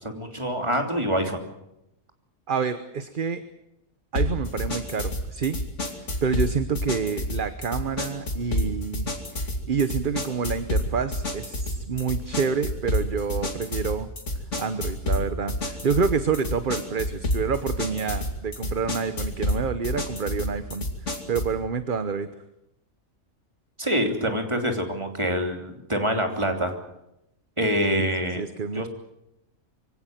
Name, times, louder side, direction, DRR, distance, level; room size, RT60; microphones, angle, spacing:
voice 1, 0.0-1.4 23.8-26.7 27.6-28.4 28.7-28.9, equal, 20° right, 4 dB, 3.2 m, -25 dB
voice 2, 2.5-3.4 4.1-5.6 5.9-14.1 14.6-22.3 28.0-28.9, right 5 dB, 40° right, 11 dB, 1.1 m, -28 dB
sound 1, 4.2-21.6, left 1 dB, 60° left, 3.1 m, -29 dB
24.0 x 17.0 x 9.2 m, 0.85 s
omnidirectional pair, 1.4 m